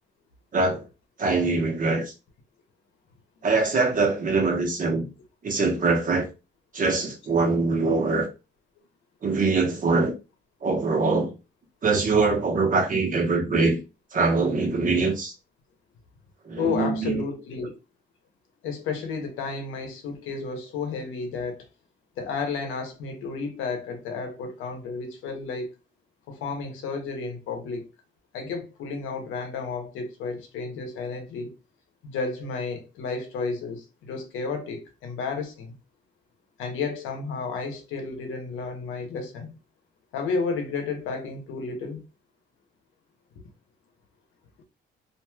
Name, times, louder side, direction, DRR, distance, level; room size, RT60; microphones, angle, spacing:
voice 1, 0.5-0.8 1.2-2.1 3.4-5.1 5.4-6.3 6.7-8.3 9.2-10.1 10.6-11.3 11.8-13.8 14.1-15.3 16.4-17.2, right 3 dB, 45° right, 1.0 m, -23 dB
voice 2, 16.6-17.7 18.6-21.7 22.2-25.7 26.3-27.9 28.3-31.5 32.0-35.7 36.6-39.6 40.1-42.0, left 4 dB, 90° left, 0.8 m, -32 dB
3.0 x 2.5 x 2.3 m
cardioid pair, 90°, 20 cm